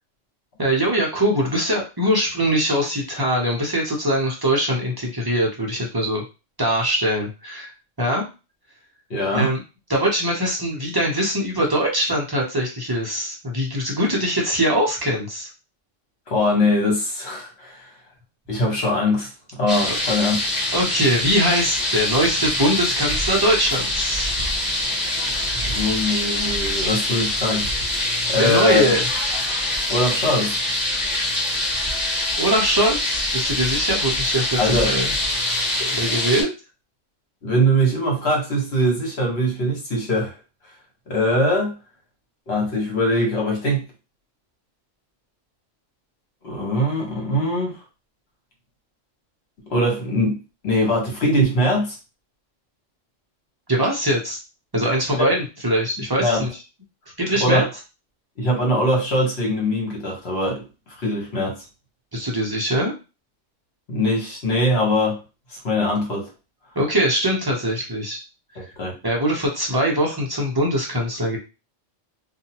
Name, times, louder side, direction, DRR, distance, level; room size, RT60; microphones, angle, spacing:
voice 1, 0.6-6.2 6.6-7.7 8.0-8.2 9.3-9.6 9.9-15.5 19.9-20.0 20.7-24.3 28.4-29.0 32.4-35.1 35.9-36.5 53.7-54.4 54.7-56.5 57.2-57.6 62.1-62.9 66.8-68.2 69.0-71.4, equal, 25° right, -2 dB, 0.5 m, -22 dB
voice 2, 9.1-9.5 16.3-17.9 18.5-20.4 25.7-27.7 28.2-29.0 29.9-30.6 34.6-34.9 35.8-35.9 37.4-40.3 41.1-41.8 42.5-43.8 46.4-47.8 49.7-52.0 56.2-56.4 57.4-57.7 58.4-60.6 61.0-61.6 63.9-65.2 65.5-66.3 68.5-68.9, left 1 dB, 55° left, -1 dB, 1.4 m, -22 dB
sound 1, 19.7-36.4, left 1 dB, 35° left, 1.3 m, -24 dB
2.8 x 2.3 x 2.8 m, 0.29 s
omnidirectional pair, 1.3 m